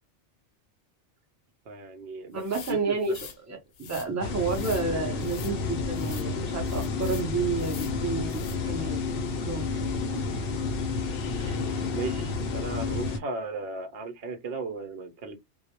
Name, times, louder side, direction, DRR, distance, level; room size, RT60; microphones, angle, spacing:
voice 1, 1.7-2.4 2.7-3.0 11.9-15.4, right 3 dB, 65° right, 0.8 m, -35 dB
voice 2, 2.3-9.0 9.4-9.6 10.1-10.2 11.4-11.6, right 4 dB, 20° right, 0.5 m, -31 dB
sound 1, 2.4-3.4 3.7-4.1 4.5-4.9 5.2-5.5 5.9-6.3 6.7-7.3 7.6-8.0 8.3-8.6, left 7 dB, 85° left, 0.9 m, -44 dB
sound 2, 4.2-13.2, left 4 dB, 65° left, 0.7 m, -30 dB
2.3 x 2.0 x 2.8 m
omnidirectional pair, 1.2 m